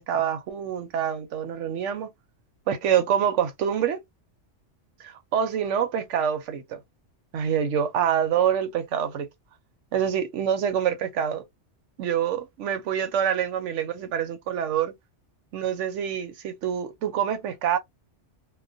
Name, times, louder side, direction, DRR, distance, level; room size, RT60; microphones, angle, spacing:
voice 1, 0.0-2.1 2.7-4.0 5.0-6.8 7.3-9.3 9.9-11.4 12.0-14.9 15.5-17.8, right 8 dB, 85° right, 0.9 m, -26 dB
2.3 x 2.2 x 2.4 m
omnidirectional pair, 1.2 m